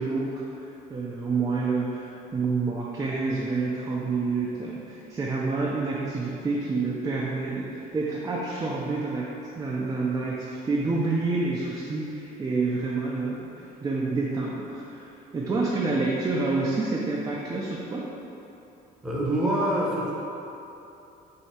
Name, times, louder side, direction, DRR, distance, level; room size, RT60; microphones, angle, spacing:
voice 1, 0.0-9.3 9.6-15.0 15.3-18.0, right 3 dB, 20° right, -4 dB, 0.5 m, -28 dB
voice 2, 19.0-20.1, right 1 dB, 5° right, -6 dB, 1.0 m, -25 dB
4.5 x 2.8 x 4.2 m, 2.9 s
cardioid pair, 110°, 17 cm